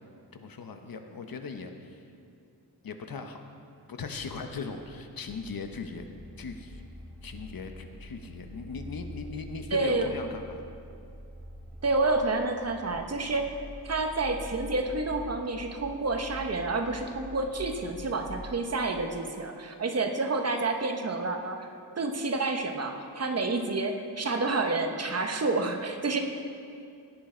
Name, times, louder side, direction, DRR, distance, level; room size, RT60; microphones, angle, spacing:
voice 1, 0.3-2.0 2.8-3.4 3.9-6.1 6.4-6.8 7.2-10.6, left 4 dB, 65° left, 5 dB, 1.0 m, -39 dB
sound 1, 5.0-18.7, left 1 dB, ahead, 1.0 m, -46 dB
voice 2, 9.7-10.1 11.8-13.6 13.8-21.7 22.0-26.2, right 3 dB, 40° right, 4 dB, 1.0 m, -29 dB
16.5 x 10.0 x 4.4 m, 2.5 s
wide cardioid pair, 150°, 38 cm